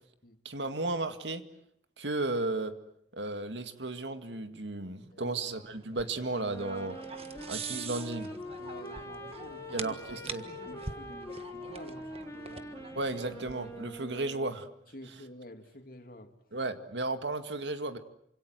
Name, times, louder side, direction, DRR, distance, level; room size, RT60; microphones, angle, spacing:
voice 1, 0.4-1.4 2.0-2.7 3.1-7.0 7.5-8.3 9.7-10.4 13.0-14.7 16.5-18.0, right 2 dB, 85° right, 9 dB, 2.1 m, -34 dB
sound 1, 5.5-14.1, right 5 dB, 35° right, 1.5 m, -45 dB
Wind instrument woodwind instrument, 6.3-14.7, equal, 20° left, 3.5 m, -44 dB
voice 2, 7.2-7.6 8.6-9.9 10.3-12.9 14.9-16.3, left 1 dB, 55° left, 6 dB, 2.7 m, -50 dB
27.5 x 26.0 x 7.8 m, 0.72 s
head